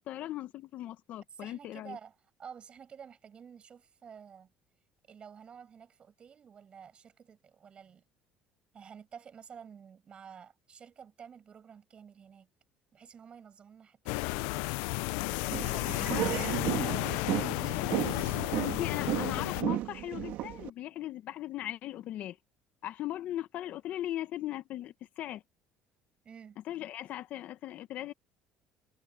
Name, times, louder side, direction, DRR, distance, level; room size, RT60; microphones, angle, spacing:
voice 1, 0.0-2.0 16.0-16.3 18.6-22.4 22.8-25.4 26.7-28.1, left 13 dB, 60° left, 1.0 m, -38 dB
voice 2, 1.3-4.5 5.1-8.0 8.7-12.5 12.9-14.8 15.5-16.4 16.7-17.9 26.2-26.6, right 7 dB, 40° right, 7.3 m, -51 dB
sound 1, 14.1-19.6, left 25 dB, 90° left, 0.4 m, -32 dB
sound 2, 15.4-20.7, right 15 dB, 70° right, 2.2 m, -34 dB
cardioid pair, 105°, 3 cm